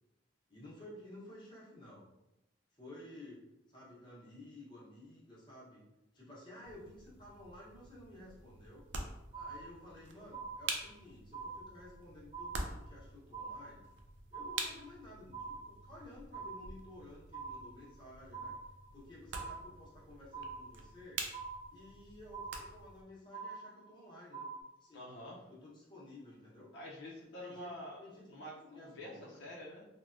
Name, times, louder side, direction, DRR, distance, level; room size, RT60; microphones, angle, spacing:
voice 1, 0.5-2.1 2.8-5.8 6.1-8.9 9.3-13.9 14.3-18.5 18.9-21.2 21.7-24.5 24.8-25.0 25.5-26.7 27.4-27.7 28.0-29.5, left 1 dB, 25° left, -6 dB, 0.9 m, -54 dB
sound 1, 6.6-23.0, right 3 dB, 85° right, 0.4 m, -47 dB
sound 2, 9.3-10.0 10.3-11.0 11.3-12.0 12.3-13.0 13.3-14.0 14.3-15.0 15.3-16.0 16.3-17.0 17.3-18.0 18.3-19.0 19.3-20.0 20.3-21.0 21.3-22.0 22.3-23.0 23.3-24.0 24.3-24.6, right 4 dB, 40° right, 0.9 m, -45 dB
voice 2, 24.9-25.5 26.7-28.0 28.3-29.9, left 1 dB, 85° left, -5 dB, 0.6 m, -47 dB
3.3 x 2.2 x 2.5 m, 0.93 s
head